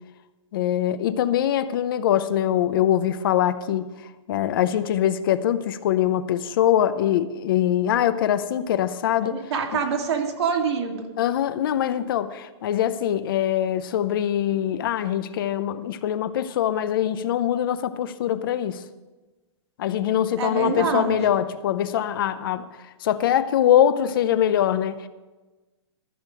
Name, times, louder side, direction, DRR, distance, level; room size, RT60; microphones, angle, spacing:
voice 1, 0.5-3.9 4.3-9.4 11.2-18.8 19.8-22.7 23.0-25.1, left 10 dB, 50° left, 0.6 m, -23 dB
voice 2, 9.3-11.1 20.4-21.2, right 5 dB, 65° right, 2.2 m, -25 dB
14.0 x 6.6 x 6.3 m
hypercardioid pair, 170°, 15 cm